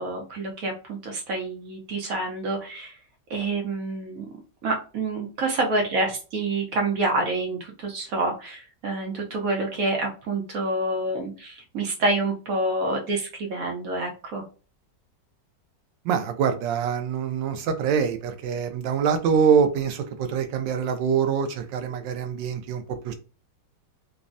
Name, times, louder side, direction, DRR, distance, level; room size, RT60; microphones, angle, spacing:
voice 1, 0.0-3.0 3.3-4.3 4.6-14.4, right 2 dB, 65° right, 0.9 m, -27 dB
voice 2, 16.0-23.1, right 7 dB, 90° right, 1.3 m, -24 dB
3.4 x 2.0 x 2.5 m
omnidirectional pair, 1.9 m